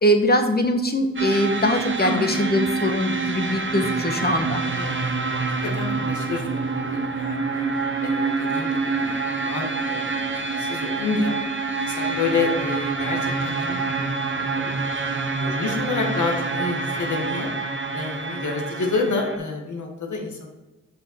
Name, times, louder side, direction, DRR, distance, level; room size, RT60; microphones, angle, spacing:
voice 1, 0.0-4.6, equal, 30° left, 6 dB, 1.3 m, -22 dB
sound 1, 1.2-19.4, right 4 dB, 35° right, 1.2 m, -26 dB
voice 2, 2.0-2.4 4.7-14.7 15.0-17.5 17.9-20.5, left 4 dB, 60° left, 2 dB, 1.7 m, -29 dB
5.8 x 5.5 x 4.4 m, 1.1 s
supercardioid pair, 40°, 33 cm